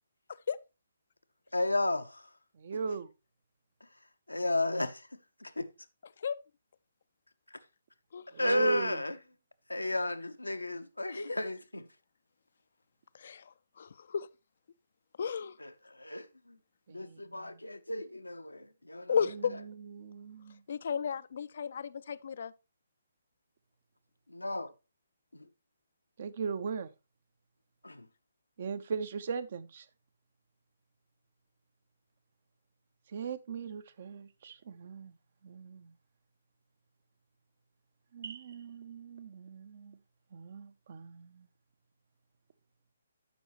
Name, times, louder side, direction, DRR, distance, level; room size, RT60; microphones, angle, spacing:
voice 1, 1.5-2.3 4.3-5.0 5.4-5.7 8.4-9.2 9.7-11.8 15.6-16.6 16.9-19.2 24.3-24.7 25.3-25.5 27.8-28.1, left 1 dB, 85° left, 0.8 m, -33 dB
voice 2, 2.6-3.1 8.3-9.0 16.9-17.6 19.3-19.4 19.8-20.6 26.2-26.9 28.6-29.9 33.1-35.1 35.4-35.9 38.1-40.0 40.3-41.5, right 5 dB, 45° right, 0.6 m, -39 dB
voice 3, 13.1-14.3 15.2-15.5 19.1-19.5 20.7-22.5, left 7 dB, 50° left, 0.4 m, -34 dB
12.5 x 5.4 x 3.0 m
figure-of-eight pair, 135°, 0 cm